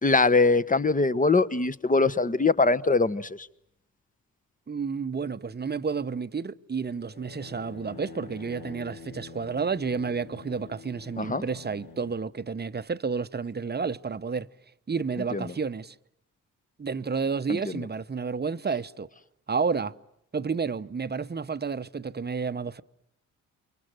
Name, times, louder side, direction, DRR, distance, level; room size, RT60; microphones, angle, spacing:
voice 1, 0.0-3.4 11.2-11.4 15.3-15.5 17.5-17.6, left 3 dB, 20° left, 1.2 m, -22 dB
voice 2, 4.7-14.5 14.9-15.9 16.8-19.1 19.5-19.9 20.3-22.8, right 5 dB, 25° right, 1.0 m, -30 dB
sound 1, 6.9-12.2, left 5 dB, 55° left, 2.2 m, -46 dB
29.5 x 24.5 x 7.9 m
hypercardioid pair, 45°, 39 cm